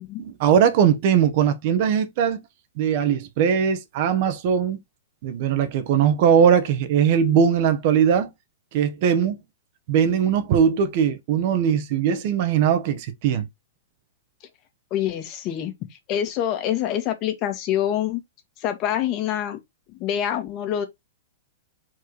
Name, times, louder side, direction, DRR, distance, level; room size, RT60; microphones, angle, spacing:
voice 1, 0.2-2.4 2.8-4.8 5.2-8.3 8.7-9.4 9.9-13.5, right 8 dB, 55° right, 1.3 m, -20 dB
voice 2, 14.9-15.7 16.1-18.2 18.6-19.6 20.0-20.8, left 10 dB, 40° left, 1.8 m, -25 dB
4.6 x 4.6 x 4.7 m
hypercardioid pair, 120°, 0 cm